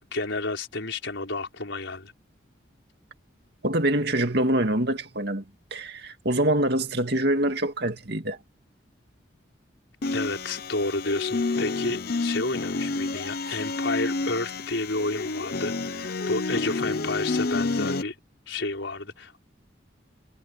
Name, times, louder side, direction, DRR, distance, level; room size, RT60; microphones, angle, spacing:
voice 1, 0.1-2.1 10.1-18.1 18.5-19.3, left 2 dB, 75° left, 4.8 m, -31 dB
voice 2, 3.6-5.4 5.7-8.4 13.5-13.6, right 1 dB, 55° right, 2.4 m, -25 dB
sound 1, 10.0-18.0, left 3 dB, 55° left, 0.7 m, -29 dB
head